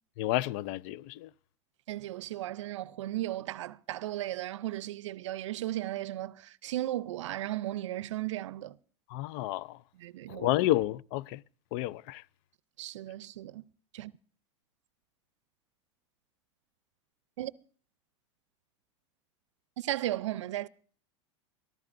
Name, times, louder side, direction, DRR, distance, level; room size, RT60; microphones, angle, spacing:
voice 1, 0.2-1.3 9.1-9.8 10.3-11.4 11.7-12.2, left 15 dB, 55° left, 0.5 m, -30 dB
voice 2, 1.9-8.7 10.0-10.5 12.8-13.6 13.9-14.1 17.4-17.5 19.8-20.7, right 14 dB, 85° right, 0.5 m, -35 dB
22.0 x 14.5 x 2.6 m
supercardioid pair, 120°, 15 cm